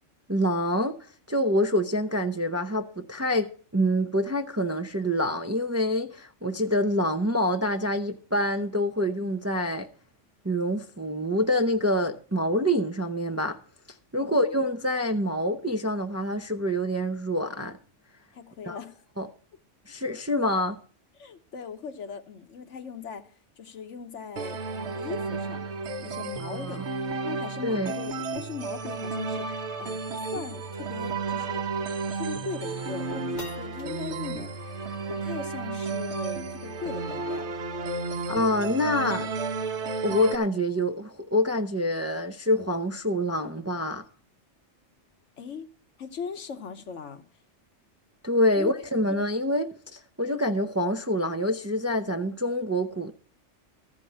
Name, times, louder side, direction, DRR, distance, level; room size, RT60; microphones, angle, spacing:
voice 1, 0.3-1.0 1.3-9.9 10.4-13.6 14.1-17.8 18.6-18.8 19.2-19.3 19.9-20.8 26.4-26.8 27.6-27.9 38.3-39.3 40.0-44.0 48.2-53.1, equal, 20° right, 0.4 m, -26 dB
voice 2, 14.2-14.6 18.3-19.0 21.2-23.2 23.6-24.6 24.9-25.6 26.0-26.8 27.2-31.6 32.1-34.7 35.1-37.4 45.4-45.7 46.0-47.2 48.6-48.7, left 6 dB, 80° left, 1.4 m, -39 dB
sound 1, 24.4-40.4, right 4 dB, 65° right, 1.2 m, -32 dB
sound 2, 30.8-31.0 31.4-31.5 32.1-32.5 32.9-39.5, left 4 dB, 40° left, 2.1 m, -52 dB
13.5 x 5.3 x 8.5 m
omnidirectional pair, 1.2 m